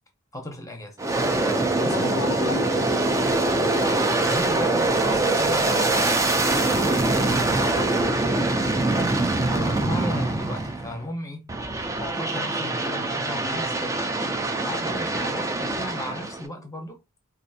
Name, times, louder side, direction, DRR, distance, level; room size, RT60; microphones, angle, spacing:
voice 1, 0.3-1.0 1.4-2.2 4.1-8.3 9.0-9.1 9.5-11.5 11.9-14.2 14.6-17.0, left 1 dB, 15° left, 0.8 m, -36 dB
Aircraft, 1.0-11.0 11.5-16.4, right 2 dB, 15° right, 0.4 m, -24 dB
voice 2, 1.9-3.7 5.6-6.0 7.7-8.8, left 7 dB, 80° left, 0.4 m, -37 dB
4.2 x 2.5 x 2.7 m
head